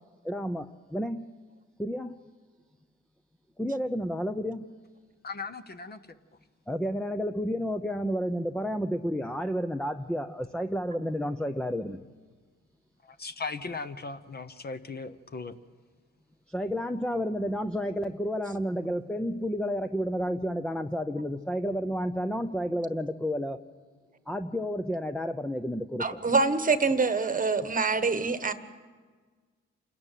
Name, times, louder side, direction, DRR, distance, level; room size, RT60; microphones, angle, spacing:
voice 1, 0.2-1.3 1.8-2.2 3.6-4.7 6.7-12.1 16.5-23.6 24.3-26.2, equal, 5° left, 8 dB, 0.6 m, -31 dB
voice 2, 5.2-6.0 13.0-15.5, left 4 dB, 30° left, 11 dB, 0.9 m, -38 dB
voice 3, 26.0-28.5, right 4 dB, 25° right, 11 dB, 1.2 m, -25 dB
27.5 x 13.5 x 9.2 m, 1.5 s
cardioid pair, 90°, 30 cm